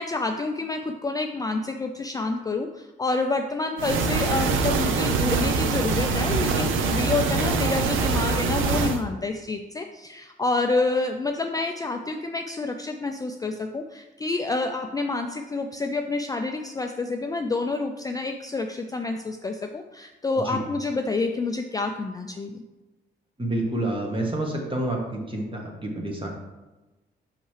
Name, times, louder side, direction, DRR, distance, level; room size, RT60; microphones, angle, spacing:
voice 1, 0.0-22.6, left 3 dB, 20° left, 4 dB, 0.3 m, -28 dB
sound 1, 3.8-9.0, right 4 dB, 80° right, 0.6 m, -24 dB
voice 2, 23.4-26.3, right 1 dB, 25° right, 0 dB, 1.4 m, -28 dB
5.8 x 5.3 x 3.2 m, 1.1 s
cardioid pair, 90°, 20 cm